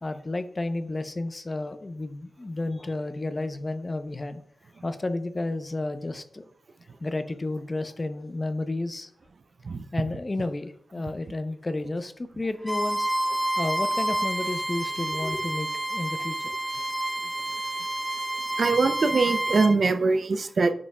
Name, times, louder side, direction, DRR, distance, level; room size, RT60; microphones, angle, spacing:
voice 1, 0.0-4.4 4.8-6.4 7.0-9.1 9.9-13.1 13.6-16.6, left 2 dB, 40° left, 0.7 m, -31 dB
Bowed string instrument, 12.6-19.7, right 1 dB, 10° right, 1.7 m, -29 dB
voice 2, 18.6-20.7, right 4 dB, 65° right, 0.5 m, -22 dB
8.3 x 5.0 x 2.3 m
cardioid pair, 45°, 0 cm